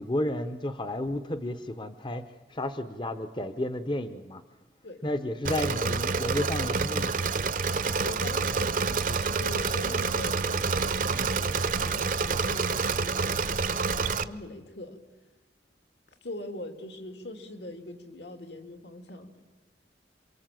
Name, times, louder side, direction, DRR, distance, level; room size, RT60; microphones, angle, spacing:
voice 1, 0.0-2.2 2.5-4.4 5.0-7.1, left 1 dB, 25° left, 10 dB, 0.8 m, -32 dB
Engine / Mechanisms, 5.4-14.2, right 4 dB, 45° right, 0.8 m, -28 dB
voice 2, 8.0-13.3 13.9-15.0 16.2-19.4, left 1 dB, 75° left, 7 dB, 2.8 m, -42 dB
28.0 x 24.0 x 7.7 m, 1.2 s
head